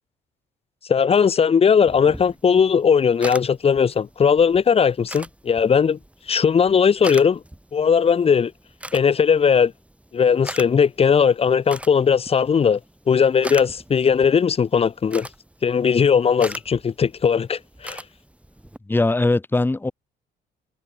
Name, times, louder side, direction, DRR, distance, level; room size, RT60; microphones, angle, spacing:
voice 1, 0.9-6.0 6.3-7.4 7.7-8.5 8.9-9.7 10.1-12.8 13.1-15.3 15.6-18.0, left 6 dB, 30° left, 0.6 m, -18 dB
sound 1, 1.9-18.8, right 1 dB, 5° right, 6.5 m, -41 dB
voice 2, 18.9-19.9, left 2 dB, 10° left, 0.9 m, -20 dB
cardioid pair, 90°, 20 cm